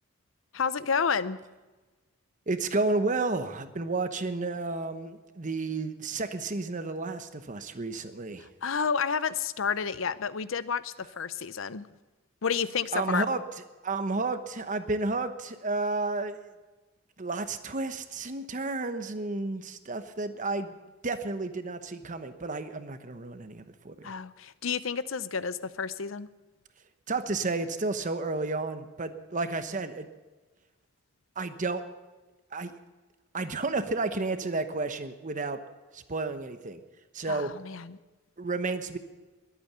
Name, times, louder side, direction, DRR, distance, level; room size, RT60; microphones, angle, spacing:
voice 1, 0.5-1.4 8.6-11.9 12.4-13.2 24.0-26.3 37.3-38.0, left 6 dB, 75° left, 16 dB, 0.7 m, -30 dB
voice 2, 2.5-8.5 12.9-13.4 13.8-16.5 17.2-20.7 21.0-24.1 27.1-30.1 31.4-31.8 32.5-32.7 33.3-35.6 35.9-36.8 37.1-37.5 38.4-39.0, right 3 dB, 40° right, 9 dB, 1.0 m, -31 dB
21.5 x 8.8 x 6.8 m, 1.2 s
head